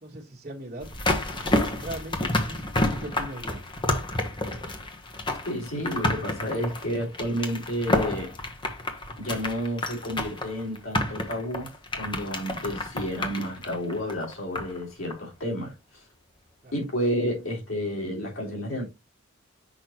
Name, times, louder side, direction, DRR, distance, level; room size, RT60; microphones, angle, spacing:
voice 1, 0.0-3.7 16.6-16.7, right 1 dB, 35° right, 1.5 m, -40 dB
sound 1, 0.8-14.8 15.1-15.2, left 1 dB, 25° left, 1.2 m, -29 dB
voice 2, 5.4-8.3 9.2-16.0 16.7-18.8, equal, 90° left, 3.6 m, -31 dB
6.1 x 5.4 x 3.0 m
head